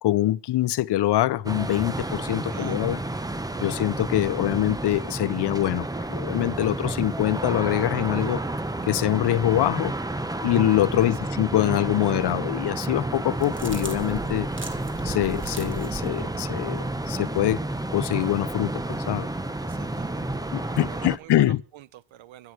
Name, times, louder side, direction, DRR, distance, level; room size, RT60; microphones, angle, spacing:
voice 1, 0.0-3.0 3.6-8.4 8.8-9.9 10.4-14.5 15.0-17.6 17.9-19.3 20.5-21.6, left 14 dB, 55° left, 0.8 m, -24 dB
sound 1, 1.4-21.2, right 2 dB, 10° right, 1.0 m, -30 dB
voice 2, 2.5-2.9 11.0-11.3 19.5-22.5, right 13 dB, 70° right, 1.2 m, -46 dB
sound 2, 13.2-16.1, right 2 dB, 25° right, 3.2 m, -38 dB
23.5 x 9.8 x 6.2 m
cardioid pair, 140°, 48 cm